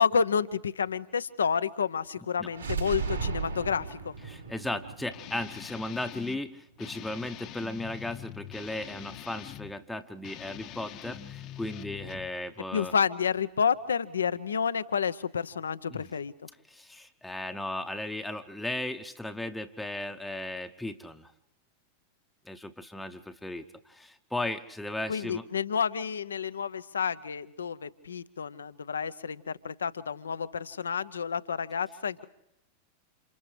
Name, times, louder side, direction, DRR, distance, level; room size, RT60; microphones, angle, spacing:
voice 1, 0.0-4.1 12.7-16.3 25.1-32.3, left 6 dB, 70° left, 15 dB, 0.8 m, -30 dB
sound 1, 2.5-6.4, right 5 dB, 80° right, 4.2 m, -36 dB
voice 2, 4.2-12.9 15.9-16.1 16.7-21.3 22.4-25.5, left 1 dB, 5° left, 5 dB, 0.9 m, -36 dB
Guitar, 5.1-6.4 6.8-9.7 10.2-12.4, left 11 dB, 35° left, 1.0 m, -44 dB
30.0 x 28.0 x 3.3 m, 0.89 s
figure-of-eight pair, 90°, 0 cm